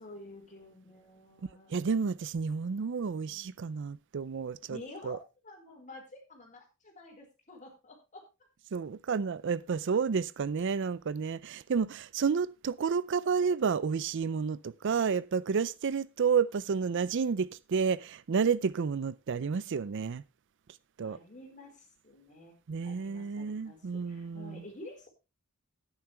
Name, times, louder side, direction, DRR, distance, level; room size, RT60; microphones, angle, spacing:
voice 1, 0.0-1.7 3.2-3.6 4.7-5.2 5.4-8.2 21.0-22.5 22.8-25.1, left 2 dB, 40° left, 4.7 m, -50 dB
voice 2, 1.7-5.2 8.7-20.2 21.0-21.2 22.7-24.6, right 6 dB, 60° right, 0.5 m, -30 dB
12.0 x 10.5 x 3.4 m
head